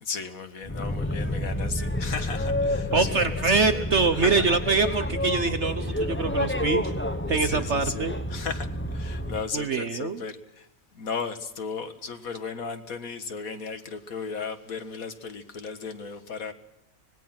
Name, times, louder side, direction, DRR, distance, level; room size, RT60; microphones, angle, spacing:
voice 1, 0.0-3.1 3.4-3.8 4.1-4.4 7.3-10.7 10.9-16.5, left 5 dB, 70° left, 9 dB, 2.1 m, -35 dB
Boat Water vehicle, 0.6-9.5, left 1 dB, 10° left, 1.0 m, -29 dB
voice 2, 2.9-6.9 7.3-8.1 9.5-10.2, right 4 dB, 55° right, 10 dB, 1.3 m, -24 dB
25.5 x 20.5 x 6.0 m, 0.87 s
omnidirectional pair, 1.5 m